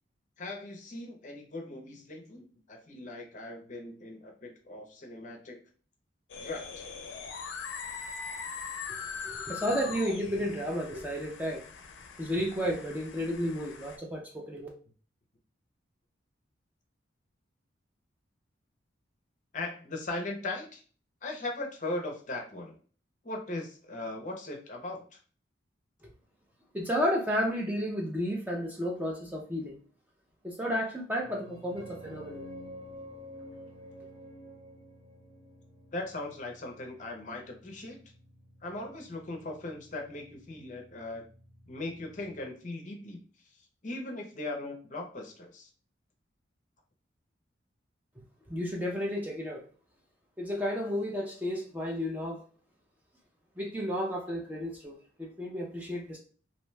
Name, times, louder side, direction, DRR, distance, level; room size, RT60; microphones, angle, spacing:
voice 1, 0.4-5.6 6.4-6.9 19.5-20.8 21.2-22.8 23.2-25.2 35.9-38.0 38.6-41.2 41.7-43.2 43.8-45.7, left 2 dB, 40° left, 2 dB, 0.6 m, -39 dB
sound 1, 6.3-14.0, left 5 dB, 85° left, 0.4 m, -41 dB
voice 2, 9.2-11.6 12.2-14.7 26.7-29.8 30.4-32.4 48.5-49.7 50.4-52.4 53.6-56.2, equal, 10° right, -2 dB, 0.4 m, -32 dB
sound 2, 31.2-42.5, equal, 35° right, 1.3 m, -50 dB
2.6 x 2.2 x 3.1 m, 0.41 s
head